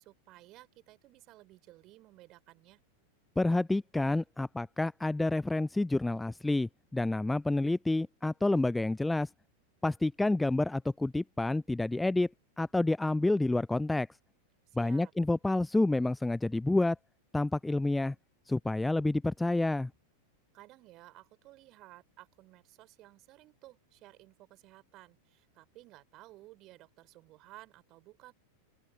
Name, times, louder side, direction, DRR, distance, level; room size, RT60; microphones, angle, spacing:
voice 1, 0.0-2.8 14.7-15.1 20.5-28.3, right 18 dB, 35° right, 5.2 m, -55 dB
voice 2, 3.4-9.3 9.8-12.3 12.6-14.1 14.8-17.0 17.3-18.1 18.5-19.9, left 2 dB, 5° left, 0.3 m, -29 dB
open air
figure-of-eight pair, 90°, 0 cm